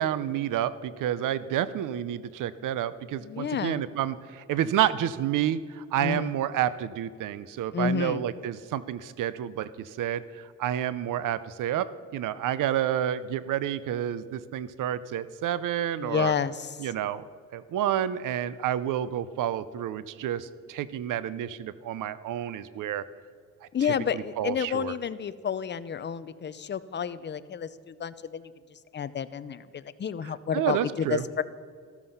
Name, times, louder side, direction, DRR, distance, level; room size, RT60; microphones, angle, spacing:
voice 1, 0.0-16.3 16.8-17.2 17.5-23.0 23.6-23.7 24.1-24.9 30.5-31.2, right 11 dB, 85° right, 16 dB, 0.7 m, -29 dB
voice 2, 3.2-3.8 6.0-6.3 7.7-8.2 16.0-16.9 23.7-31.4, left 7 dB, 35° left, 14 dB, 0.6 m, -30 dB
13.5 x 13.0 x 5.6 m, 2.1 s
cardioid pair, 120°, 31 cm